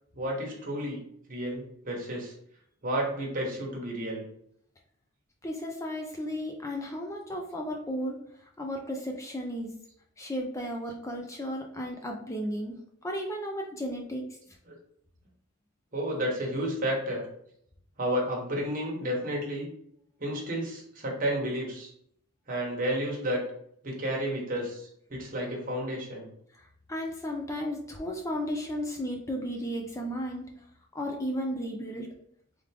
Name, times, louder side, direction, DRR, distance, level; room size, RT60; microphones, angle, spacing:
voice 1, 0.1-1.0 1.3-2.3 2.8-4.2 14.7-14.8 15.9-17.2 18.0-19.7 20.2-21.9 22.5-23.4 23.8-26.3, equal, 35° right, -1 dB, 1.2 m, -31 dB
voice 2, 5.4-8.2 8.6-9.7 10.2-12.8 13.0-14.4 26.5-30.5 30.9-32.1, equal, 15° left, 1 dB, 0.5 m, -34 dB
3.6 x 3.5 x 3.4 m, 0.69 s
head